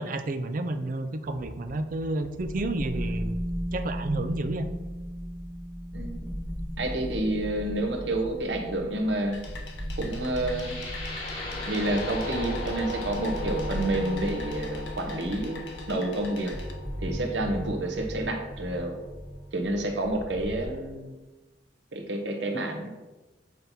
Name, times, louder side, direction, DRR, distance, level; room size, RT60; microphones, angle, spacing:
voice 1, 0.0-3.4 3.7-4.6, right 2 dB, 50° right, 9 dB, 0.5 m, -30 dB
sound 1, 1.2-20.6, equal, 20° right, 1.2 m, -37 dB
voice 2, 5.9-6.3 6.8-9.4 10.0-10.8 11.7-16.6 17.0-19.0 19.5-21.1 21.9-22.9, right 1 dB, 85° right, 4 dB, 1.0 m, -29 dB
sound 2, 9.3-16.7, left 4 dB, 90° left, 1.0 m, -46 dB
sound 3, 10.5-18.5, left 1 dB, 50° left, 2.3 m, -37 dB
7.6 x 2.9 x 5.4 m, 1.1 s
head